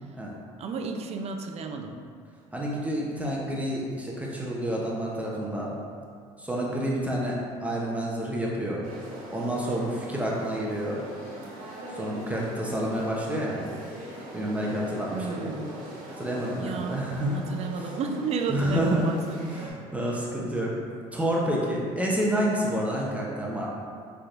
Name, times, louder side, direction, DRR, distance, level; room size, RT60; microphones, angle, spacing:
voice 1, 0.6-2.0 15.1-15.8 16.5-19.4, right 4 dB, 45° right, 4 dB, 0.5 m, -32 dB
voice 2, 2.5-5.8 6.4-8.8 9.3-11.0 12.0-13.7 14.3-15.6 16.2-17.4 17.8-17.9 18.5-19.2 19.5-20.7 21.1-23.7, equal, 10° right, -4 dB, 0.8 m, -29 dB
sound 1, 8.8-19.7, right 1 dB, 65° right, 1.3 m, -42 dB
5.6 x 3.5 x 2.5 m, 2.2 s
supercardioid pair, 80°, 15 cm